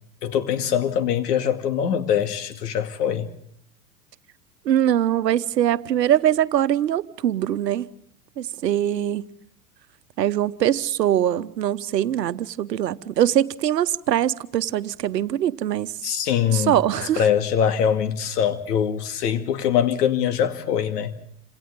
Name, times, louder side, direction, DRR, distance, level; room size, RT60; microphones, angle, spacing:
voice 1, 0.2-3.3 16.0-16.7 17.2-21.1, left 8 dB, 70° left, 2.4 m, -23 dB
voice 2, 4.6-7.9 8.4-9.3 10.2-16.0 16.5-17.2, right 11 dB, 80° right, 1.1 m, -22 dB
28.0 x 27.0 x 3.8 m
hypercardioid pair, 90°, 49 cm